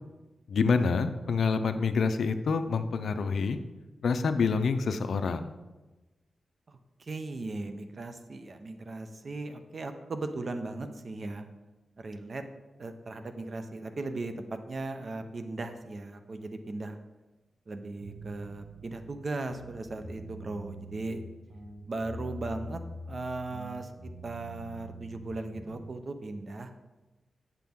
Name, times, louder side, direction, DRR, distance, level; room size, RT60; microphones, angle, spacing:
voice 1, 0.5-3.6 4.0-5.5, left 5 dB, 75° left, 10 dB, 0.4 m, -27 dB
voice 2, 6.7-11.5 12.0-12.4 12.8-17.0 17.7-21.2 21.9-22.8 23.1-26.8, right 2 dB, 45° right, 8 dB, 0.6 m, -37 dB
sound 1, 18.0-19.1 19.4-21.2 21.5-23.2 23.5-25.9, right 1 dB, 70° right, 2.1 m, -44 dB
8.3 x 6.0 x 3.6 m, 1.1 s
wide cardioid pair, 95°, 0 cm